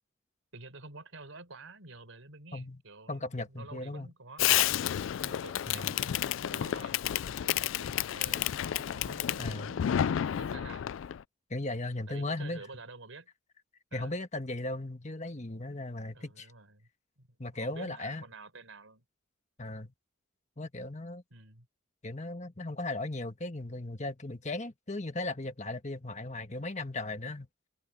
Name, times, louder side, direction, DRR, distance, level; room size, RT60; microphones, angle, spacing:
voice 1, 0.5-4.8 5.2-9.8 10.4-10.9 12.1-13.3 13.9-14.1 16.1-16.9 17.2-17.3 17.5-19.0 21.3-21.7, right 3 dB, 85° right, 4.2 m, -49 dB
voice 2, 3.1-4.1 5.7-5.9 9.4-9.8 11.5-12.6 13.9-16.5 17.4-18.2 19.6-19.9 20.6-21.2 22.0-27.5, left 2 dB, 35° left, 1.5 m, -37 dB
Fireworks, 4.4-11.2, left 11 dB, 70° left, 0.3 m, -30 dB
head